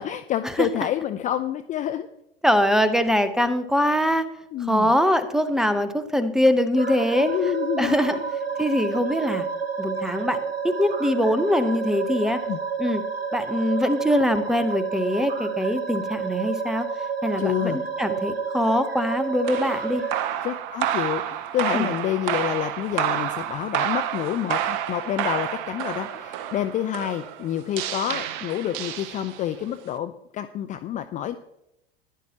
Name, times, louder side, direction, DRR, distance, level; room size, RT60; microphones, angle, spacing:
voice 1, 0.0-2.1 4.5-4.9 7.2-8.3 12.5-12.6 17.4-17.8 20.4-31.4, left 11 dB, 25° left, 10 dB, 0.5 m, -28 dB
voice 2, 2.4-4.3 4.6-7.3 7.8-8.2 8.6-9.5 9.8-12.4 12.8-13.0 13.3-16.9 17.2-20.0 21.7-21.9, equal, ahead, 11 dB, 0.8 m, -23 dB
sound 1, 6.8-20.2, right 6 dB, 90° right, 0.8 m, -30 dB
sound 2, 19.4-29.6, right 11 dB, 50° right, 0.8 m, -29 dB
14.5 x 11.0 x 2.9 m, 0.82 s
figure-of-eight pair, 85°, 30 cm